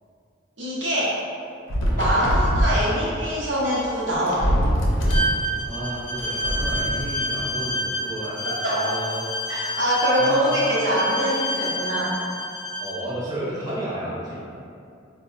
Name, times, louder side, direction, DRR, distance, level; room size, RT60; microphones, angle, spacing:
voice 1, 0.6-1.2 2.0-4.5 8.4-8.9 9.5-12.2, equal, 70° right, -7 dB, 0.7 m, -23 dB
sound 1, 1.7-2.8 3.9-5.3 6.2-7.1, equal, 75° left, 0.5 m, -22 dB
Bowed string instrument, 5.1-13.0, equal, 25° left, 0.4 m, -29 dB
voice 2, 5.6-9.8 10.1-10.5 12.8-14.4, right 1 dB, 20° right, -10 dB, 0.7 m, -32 dB
4.1 x 2.0 x 2.4 m, 2.5 s
head